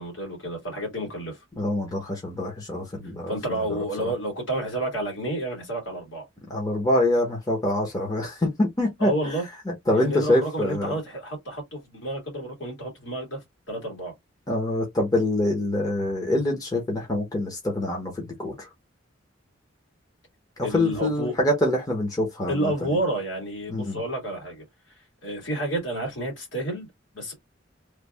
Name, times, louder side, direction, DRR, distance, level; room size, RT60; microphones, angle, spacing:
voice 1, 0.0-1.4 3.3-6.2 9.0-9.5 9.9-13.4 13.7-14.1 20.6-21.4 22.5-24.6 25.2-26.9 27.1-27.3, right 1 dB, 70° left, 2.1 m, -30 dB
voice 2, 1.6-3.4 4.0-4.1 6.5-9.1 9.9-10.9 14.5-18.7 20.6-22.7 23.7-24.0, left 1 dB, 20° left, 1.0 m, -25 dB
3.3 x 2.3 x 3.4 m
head